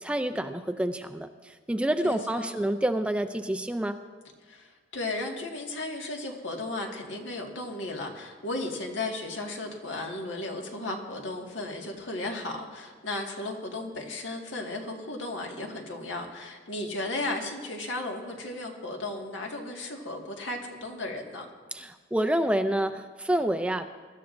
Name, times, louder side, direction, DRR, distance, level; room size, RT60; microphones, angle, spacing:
voice 1, 0.0-4.0 21.7-23.9, right 1 dB, 5° right, 8 dB, 0.4 m, -28 dB
voice 2, 2.0-2.6 4.5-21.5, left 2 dB, 75° left, 1 dB, 1.8 m, -35 dB
23.5 x 13.0 x 2.6 m, 1.5 s
head